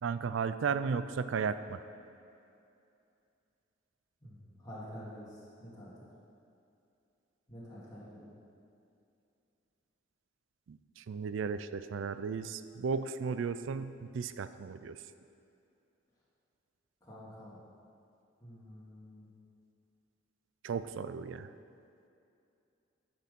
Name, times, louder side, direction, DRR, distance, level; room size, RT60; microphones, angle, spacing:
voice 1, 0.0-1.8 10.7-15.0 20.6-21.5, right 5 dB, 65° right, 12 dB, 0.4 m, -35 dB
voice 2, 4.2-6.1 7.5-8.3 17.0-17.6 18.4-19.3, equal, 20° left, -9 dB, 2.0 m, -48 dB
10.0 x 6.1 x 5.3 m, 2.6 s
head